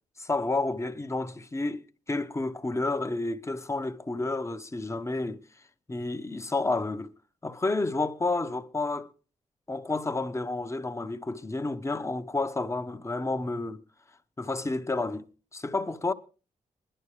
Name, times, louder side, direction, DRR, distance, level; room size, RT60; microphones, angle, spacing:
voice 1, 0.2-1.8 2.1-5.4 5.9-7.1 7.4-9.1 9.7-13.8 14.4-15.2 15.5-16.1, left 2 dB, 20° left, 1.0 m, -30 dB
20.5 x 11.0 x 3.3 m
cardioid pair, 90°, 14 cm